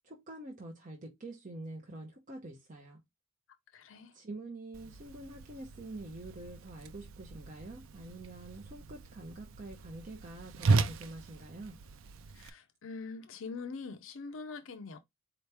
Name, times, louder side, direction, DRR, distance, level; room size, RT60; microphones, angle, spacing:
voice 1, 0.0-3.0 4.1-11.8, right 2 dB, 40° right, 0.7 m, -46 dB
voice 2, 3.7-4.2 12.3-15.0, left 4 dB, 65° left, 0.5 m, -43 dB
Whoosh swoosh swish, 4.7-12.5, right 3 dB, 75° right, 0.5 m, -36 dB
4.3 x 2.9 x 3.3 m
head